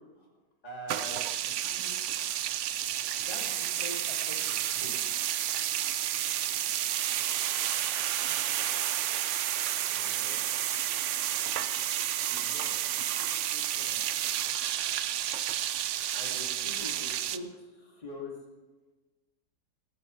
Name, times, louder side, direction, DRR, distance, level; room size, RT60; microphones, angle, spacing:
voice 1, 0.6-2.0 3.2-5.0 16.1-18.3, left 1 dB, 25° left, -2 dB, 2.5 m, -43 dB
sound 1, 0.9-17.4, right 11 dB, 80° right, 0.6 m, -31 dB
voice 2, 9.6-10.6 12.3-14.1, left 1 dB, 60° left, -2 dB, 2.3 m, -52 dB
18.5 x 15.0 x 3.2 m, 1.2 s
omnidirectional pair, 1.8 m